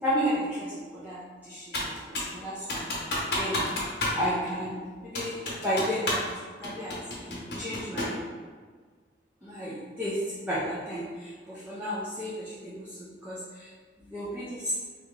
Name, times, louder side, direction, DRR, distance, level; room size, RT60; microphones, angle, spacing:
voice 1, 0.0-3.6 4.1-6.3 6.6-8.2 9.4-13.7 14.0-14.8, equal, 10° right, -10 dB, 0.6 m, -33 dB
Computer keyboard, 1.7-2.4 2.7-4.2 4.5-4.6 5.1-6.3 6.6-8.2, left 1 dB, 65° left, 1.0 m, -30 dB
3.0 x 3.0 x 3.6 m, 1.5 s
head